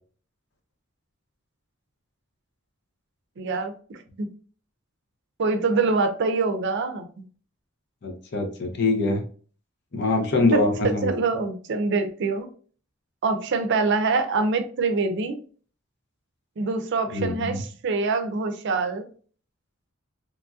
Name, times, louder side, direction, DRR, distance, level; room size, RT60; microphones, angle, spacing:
voice 1, 3.4-4.3 5.4-7.1 10.5-12.5 13.2-15.4 16.6-19.0, right 4 dB, 60° right, 0.4 m, -25 dB
voice 2, 8.0-9.2 9.9-11.1 17.1-17.6, left 2 dB, 60° left, 0.6 m, -24 dB
2.9 x 2.6 x 2.3 m
head